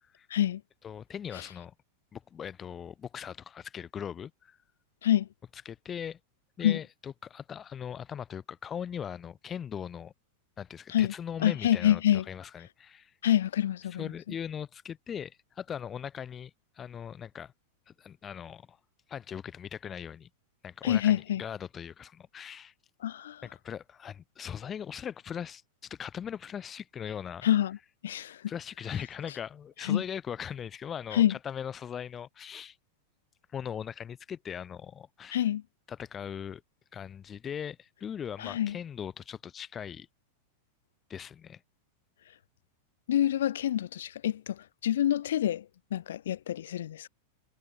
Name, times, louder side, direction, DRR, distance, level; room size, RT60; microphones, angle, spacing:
voice 1, 0.8-1.7 2.1-4.6 5.7-6.2 6.6-10.1 10.6-13.1 14.0-17.5 18.0-18.8 19.1-20.3 20.6-22.7 23.4-27.5 28.5-32.8 33.5-35.4 35.9-36.6 36.9-40.1 41.1-41.6, left 8 dB, 25° left, 0.7 m, -39 dB
voice 2, 11.4-12.3 13.2-14.1 20.8-21.4 23.0-23.4 27.4-27.8 28.0-28.4 29.8-30.0 31.1-31.3 35.3-35.6 38.4-38.8 43.1-45.7 45.9-47.1, left 11 dB, 60° left, 0.3 m, -26 dB
figure-of-eight pair, 90°, 0 cm